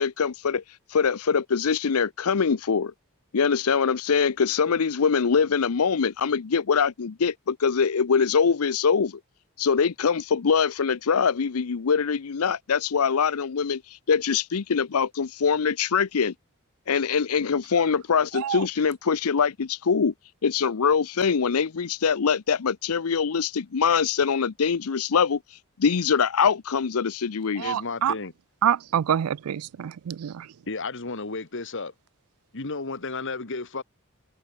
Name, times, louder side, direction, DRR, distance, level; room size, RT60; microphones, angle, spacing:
voice 1, 0.0-0.6 0.9-2.9 3.3-9.2 9.6-16.3 16.9-20.1 20.4-25.4 25.8-27.7, left 6 dB, 85° left, 0.6 m, -23 dB
voice 2, 18.3-18.7 27.6-28.1 28.6-30.5, right 9 dB, 85° right, 0.4 m, -26 dB
voice 3, 27.6-28.3 30.7-31.9 32.5-33.8, left 3 dB, 60° left, 1.9 m, -33 dB
head